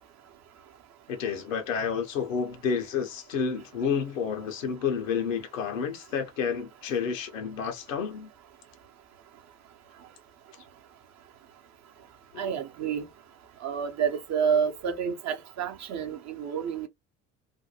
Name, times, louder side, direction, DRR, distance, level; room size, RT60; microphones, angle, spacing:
voice 1, 1.1-8.3, left 6 dB, 80° left, 0.7 m, -30 dB
voice 2, 12.4-13.0 13.6-16.9, right 7 dB, 45° right, 0.7 m, -29 dB
2.6 x 2.2 x 2.7 m
figure-of-eight pair, 55°, 38 cm